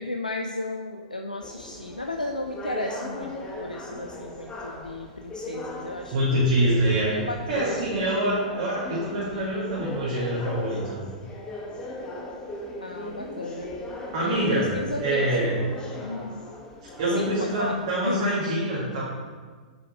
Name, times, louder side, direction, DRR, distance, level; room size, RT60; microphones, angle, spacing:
voice 1, 0.0-3.3 3.6-6.3 7.1-7.8 12.8-13.7 14.2-15.5 16.0-16.4 17.1-17.8 18.0-18.3, left 2 dB, 90° left, 3 dB, 0.4 m, -34 dB
sound 1, 1.4-18.2, left 1 dB, 20° left, 1.1 m, -38 dB
voice 2, 6.1-7.1 7.5-11.0 14.1-14.7 15.0-15.5 17.0-19.0, right 1 dB, 55° right, -8 dB, 2.0 m, -25 dB
6.7 x 4.9 x 4.9 m, 1.4 s
figure-of-eight pair, 100°, 4 cm